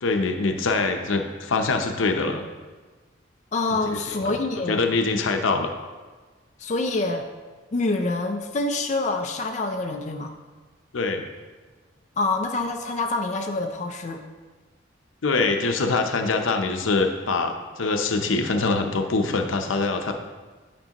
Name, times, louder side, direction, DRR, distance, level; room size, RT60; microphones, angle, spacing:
voice 1, 0.0-2.5 3.7-4.3 4.7-5.7 10.9-11.2 15.2-20.1, left 3 dB, 90° left, 5 dB, 0.7 m, -24 dB
voice 2, 3.5-4.8 6.6-7.2 7.7-10.3 12.2-14.2, left 2 dB, 35° left, 4 dB, 0.4 m, -26 dB
9.4 x 5.3 x 2.9 m, 1.3 s
head